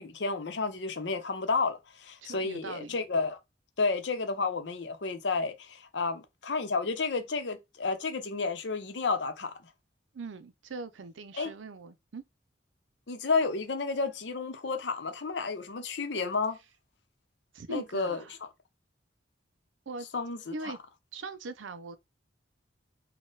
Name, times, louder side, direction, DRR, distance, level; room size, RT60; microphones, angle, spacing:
voice 1, 0.0-3.4 3.8-9.5 11.4-11.5 13.1-16.6 17.7-18.2 20.1-20.7, left 4 dB, 65° left, 0.7 m, -31 dB
voice 2, 2.2-3.0 10.1-12.2 17.5-18.3 19.9-20.1 20.5-20.8 21.1-22.0, right 3 dB, 85° right, 0.6 m, -41 dB
4.1 x 2.2 x 3.8 m
head